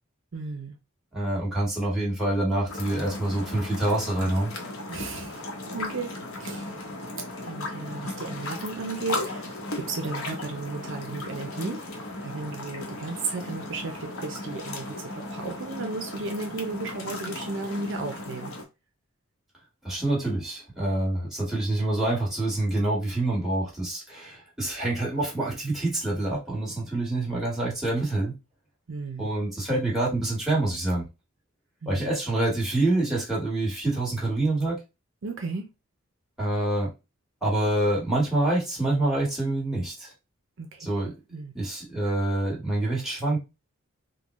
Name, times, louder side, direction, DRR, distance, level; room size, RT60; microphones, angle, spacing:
voice 1, 0.3-0.8 4.9-6.7 7.4-11.8 12.2-18.5 28.9-29.3 31.8-32.1 35.2-35.7 40.6-41.5, right 3 dB, 60° right, 0.6 m, -35 dB
voice 2, 1.1-4.5 19.8-28.3 29.2-31.0 31.9-34.8 36.4-36.9 37.4-40.1 40.8-41.1 41.5-43.4, right 2 dB, ahead, 1.5 m, -26 dB
sound 1, 2.7-18.6, left 2 dB, 80° left, 0.9 m, -36 dB
3.7 x 2.2 x 3.0 m
head